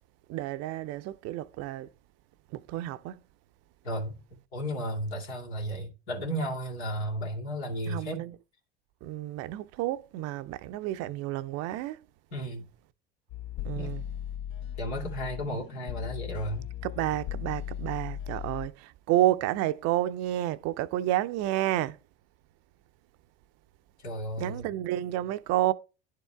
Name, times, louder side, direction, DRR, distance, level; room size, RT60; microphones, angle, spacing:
voice 1, 0.3-1.9 2.5-3.2 7.9-8.4 9.0-12.0 13.6-14.1 16.8-22.0 24.4-25.7, right 14 dB, 50° right, 0.6 m, -30 dB
voice 2, 3.8-4.2 4.5-8.2 12.3-12.7 13.7-14.0 14.8-16.6 24.0-24.7, equal, 80° left, 2.6 m, -34 dB
sound 1, 13.3-18.7, left 11 dB, 40° left, 0.4 m, -37 dB
11.0 x 4.7 x 3.4 m
hypercardioid pair, 75°, 32 cm